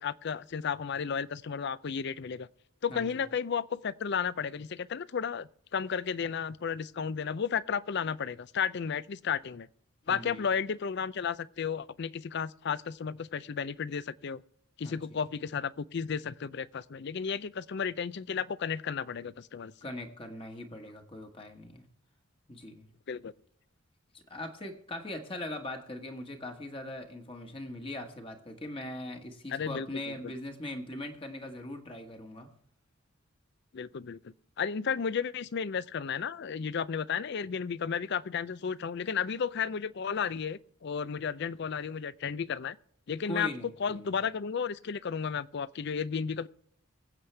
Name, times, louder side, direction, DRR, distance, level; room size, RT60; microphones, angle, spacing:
voice 1, 0.0-2.5 2.8-9.7 10.1-14.4 14.8-19.7 23.1-23.3 29.5-30.3 33.7-42.8 43.1-43.5 43.8-46.5, left 6 dB, 55° left, 0.4 m, -33 dB
voice 2, 2.9-3.2 10.1-10.4 14.8-15.0 19.8-21.8 22.5-22.9 24.1-32.5 43.3-44.1, left 1 dB, 25° left, 1.3 m, -40 dB
23.5 x 7.9 x 3.3 m
head